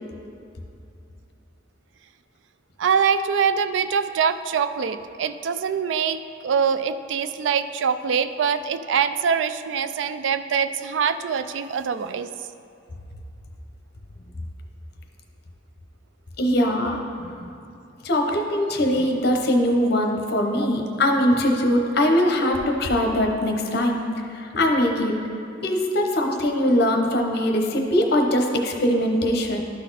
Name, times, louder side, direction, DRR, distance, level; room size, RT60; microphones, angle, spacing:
voice 1, 2.8-6.2 6.4-12.3, right 6 dB, 75° right, 12 dB, 0.3 m, -24 dB
voice 2, 16.4-17.5 18.0-24.0 24.3-25.1 25.6-29.6, left 1 dB, 55° left, 3 dB, 0.8 m, -21 dB
12.0 x 4.1 x 4.1 m, 2.6 s
head